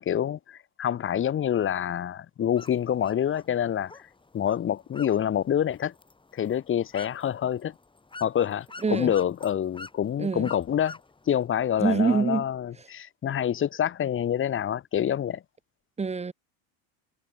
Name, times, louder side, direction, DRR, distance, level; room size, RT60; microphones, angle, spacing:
voice 1, 0.0-3.9 4.3-5.9 6.3-7.7 8.2-11.0 11.3-15.4, left 9 dB, 30° left, 1.5 m, -27 dB
sound 1, 2.5-11.5, left 3 dB, 10° left, 5.5 m, -48 dB
voice 2, 10.2-10.5 11.8-12.4 16.0-16.3, right 4 dB, 15° right, 1.9 m, -25 dB
supercardioid pair, 120°, 39 cm